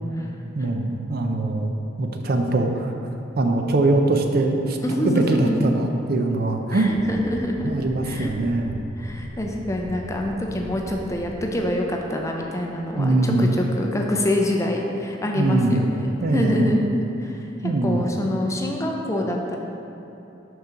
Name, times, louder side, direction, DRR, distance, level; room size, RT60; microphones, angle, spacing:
voice 1, 0.6-1.7 2.0-2.9 3.4-4.8 5.0-6.9 7.6-8.8 12.9-13.5 15.4-15.8 16.2-16.7 17.6-18.0, right 2 dB, 50° right, 4 dB, 0.5 m, -22 dB
voice 2, 4.8-5.7 6.7-7.7 8.0-8.3 9.0-17.5 17.8-19.6, left 1 dB, 15° left, 1 dB, 0.5 m, -25 dB
sound 1, 6.8-13.0, equal, 5° right, 1.4 m, -39 dB
5.6 x 3.8 x 5.7 m, 3.0 s
head